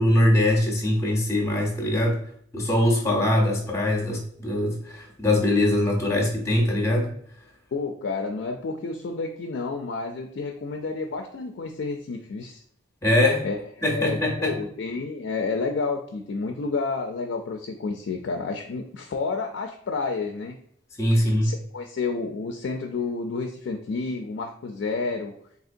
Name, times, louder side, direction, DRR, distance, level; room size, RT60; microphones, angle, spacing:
voice 1, 0.0-2.2 2.5-7.1 13.0-13.5 13.8-14.6 21.0-21.5, left 1 dB, 15° left, 0 dB, 0.6 m, -22 dB
voice 2, 7.7-12.6 13.4-20.6 21.1-25.4, left 4 dB, 70° left, 4 dB, 0.4 m, -30 dB
3.7 x 2.8 x 2.5 m, 0.66 s
head